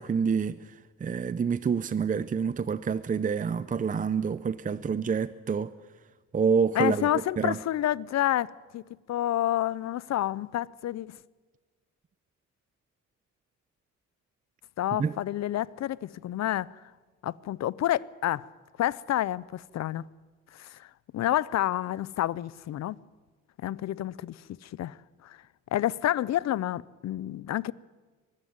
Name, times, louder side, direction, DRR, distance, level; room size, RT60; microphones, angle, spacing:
voice 1, 0.0-5.7 6.3-7.1 7.4-7.6 14.9-15.2, right 6 dB, 25° right, 0.6 m, -27 dB
voice 2, 6.7-8.5 8.7-8.8 9.1-11.2 14.8-16.7 17.2-18.5 18.8-20.1 20.5-20.9 21.1-23.0 23.6-25.0 25.2-25.4 25.7-27.7, left 13 dB, 60° left, 0.6 m, -29 dB
23.5 x 13.5 x 9.6 m
cardioid pair, 90°, 30 cm